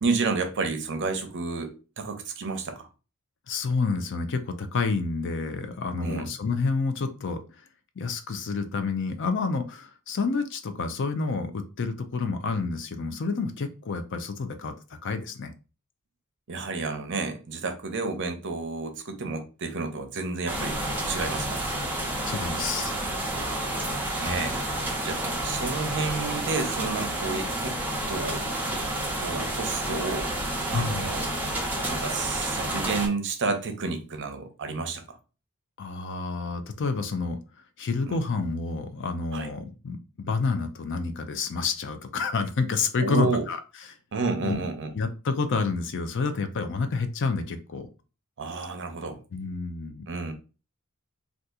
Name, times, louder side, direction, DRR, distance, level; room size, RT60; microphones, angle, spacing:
voice 1, 0.0-2.9 6.0-6.3 16.5-21.6 23.3-24.8 25.0-27.8 28.1-28.5 29.2-30.3 30.7-31.3 31.9-35.2 38.1-38.2 39.3-39.5 43.0-43.4 44.1-44.9 48.4-49.2 50.1-50.3, right 4 dB, 55° right, 0.7 m, -31 dB
voice 2, 3.5-7.4 8.0-14.7 15.0-15.5 22.2-22.9 24.3-24.5 30.7-31.1 35.8-37.4 37.8-43.6 44.4-44.7 44.9-47.9 49.3-50.0, left 4 dB, 55° left, 0.5 m, -29 dB
sound 1, 20.5-33.1, right 1 dB, 10° right, 0.6 m, -30 dB
2.7 x 2.4 x 3.5 m
head